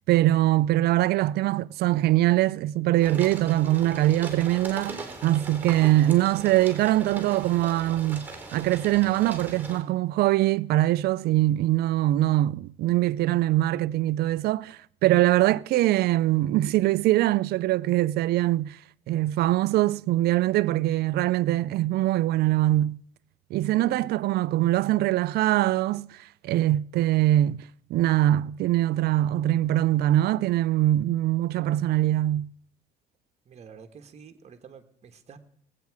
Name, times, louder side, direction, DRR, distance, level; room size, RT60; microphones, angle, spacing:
voice 1, 0.1-18.8 19.1-23.0 23.5-27.6 27.9-32.5, right 15 dB, 70° right, 0.4 m, -23 dB
sound 1, 3.0-9.8, right 3 dB, 10° right, 3.4 m, -40 dB
voice 2, 33.4-35.4, right 6 dB, 40° right, 1.3 m, -48 dB
19.5 x 8.5 x 4.7 m
cardioid pair, 110°, 17 cm